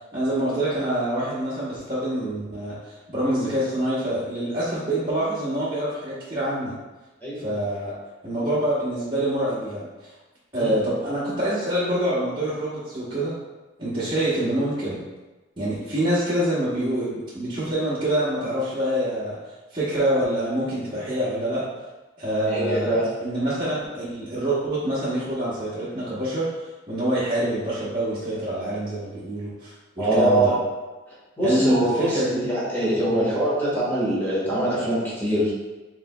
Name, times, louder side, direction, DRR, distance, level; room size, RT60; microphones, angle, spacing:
voice 1, 0.1-6.7 7.4-7.9 8.2-10.1 10.5-13.3 13.8-15.0 15.6-19.4 19.7-21.7 22.2-26.5 26.9-30.5 31.4-32.5 33.1-33.3, right 1 dB, 25° right, -11 dB, 1.0 m, -26 dB
voice 2, 22.4-23.1 30.0-30.6 31.4-35.5, right 1 dB, 10° left, -8 dB, 1.5 m, -23 dB
4.9 x 3.7 x 2.2 m, 1.2 s
head